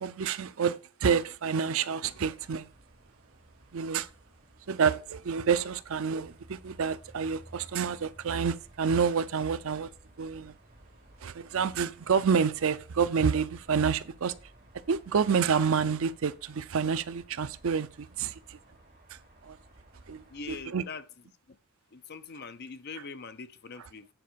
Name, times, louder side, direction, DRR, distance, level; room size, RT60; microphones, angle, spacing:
voice 1, 0.0-2.7 3.7-4.1 4.7-9.9 10.2-10.5 11.2-14.3 14.9-18.6 19.1-19.2 19.4-19.6 20.1-20.8, right 6 dB, 65° right, 0.5 m, -28 dB
sound 1, 2.0-20.7, right 1 dB, 45° right, 2.2 m, -56 dB
voice 2, 20.3-21.0 21.5-21.6 21.9-24.1, left 4 dB, 45° left, 0.6 m, -42 dB
9.0 x 4.6 x 5.1 m
head